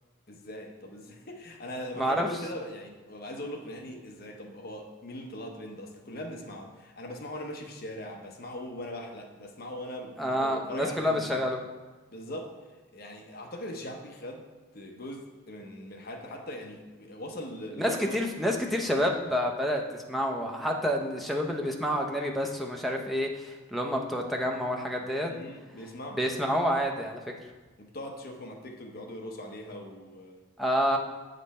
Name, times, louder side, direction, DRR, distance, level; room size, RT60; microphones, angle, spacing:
voice 1, 0.3-11.3 12.1-12.5 12.9-14.5 14.7-18.2 25.3-26.2 27.8-30.4, left 1 dB, 45° left, 2 dB, 0.8 m, -40 dB
voice 2, 2.0-2.3 10.2-11.6 17.8-25.3 26.1-27.2 30.6-31.0, equal, ahead, 1 dB, 0.6 m, -28 dB
8.0 x 5.3 x 4.2 m, 1.3 s
head